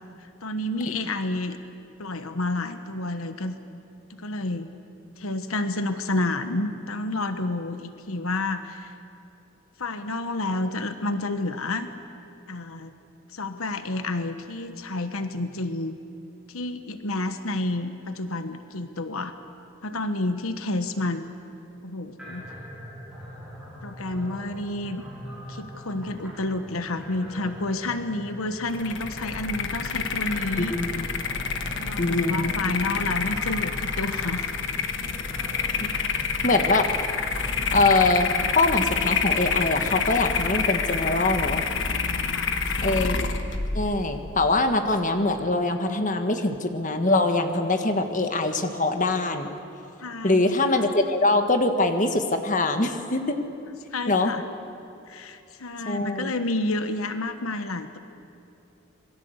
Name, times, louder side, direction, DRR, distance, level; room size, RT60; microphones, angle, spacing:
voice 1, 0.4-1.6 2.0-3.6 4.1-4.7 5.2-8.9 9.8-11.9 12.5-12.9 13.3-16.0 16.5-19.3 19.8-21.2 21.8-22.5 23.8-25.0 25.5-30.8 31.7-34.5 42.2-42.9 50.0-50.5 53.9-54.4 55.1-58.0, left 2 dB, 85° left, 9 dB, 1.3 m, -30 dB
sound 1, 22.2-38.4, equal, 5° right, 6.2 m, -42 dB
sound 2, 28.7-45.0, left 5 dB, 55° left, 1.5 m, -28 dB
voice 2, 30.6-31.1 32.0-32.5 35.8-35.9 36.4-36.9 37.7-38.3 38.5-41.6 42.8-43.3 43.7-49.5 50.2-53.4 54.1-54.3 55.8-56.3, left 2 dB, 35° left, 6 dB, 1.6 m, -23 dB
26.5 x 21.5 x 8.1 m, 2.7 s
head